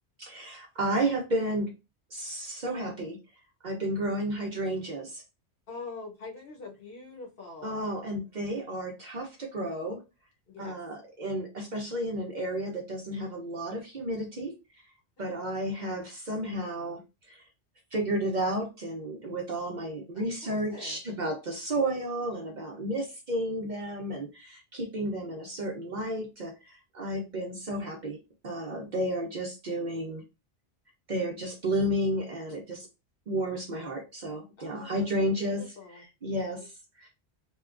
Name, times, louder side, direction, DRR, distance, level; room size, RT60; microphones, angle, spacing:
voice 1, 0.2-1.8 2.1-3.2 3.6-5.2 7.6-10.0 10.6-14.5 15.2-17.0 17.3-17.5 17.9-28.2 28.4-30.2 31.1-32.9 33.3-37.1, right 1 dB, 50° right, 0.6 m, -32 dB
voice 2, 5.7-7.8 10.5-10.8 15.2-15.4 20.1-21.0 34.6-36.1 36.6-36.7, left 3 dB, 60° left, 0.9 m, -44 dB
2.8 x 2.3 x 2.4 m
omnidirectional pair, 1.1 m